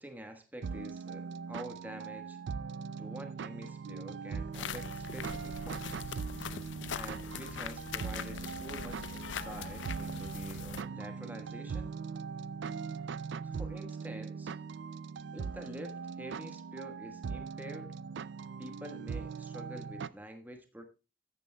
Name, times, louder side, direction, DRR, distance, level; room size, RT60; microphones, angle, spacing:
voice 1, 0.0-2.4 3.0-6.2 6.9-12.0 13.4-14.5 15.3-17.9 18.6-20.8, right 1 dB, 10° right, 1.2 m, -47 dB
sound 1, 0.6-20.1, right 5 dB, 60° right, 0.4 m, -40 dB
sound 2, 4.5-10.8, left 7 dB, 70° left, 0.5 m, -42 dB
14.0 x 9.2 x 2.2 m
head